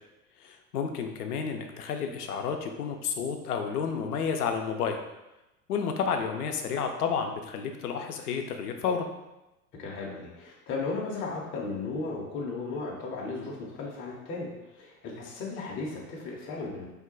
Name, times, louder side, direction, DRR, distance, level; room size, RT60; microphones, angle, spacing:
voice 1, 0.4-5.0 5.7-9.1, left 6 dB, 80° left, 4 dB, 0.6 m, -31 dB
voice 2, 9.7-16.9, left 3 dB, 25° left, -3 dB, 0.6 m, -35 dB
2.7 x 2.2 x 3.8 m, 0.98 s
hypercardioid pair, 85°, 45 cm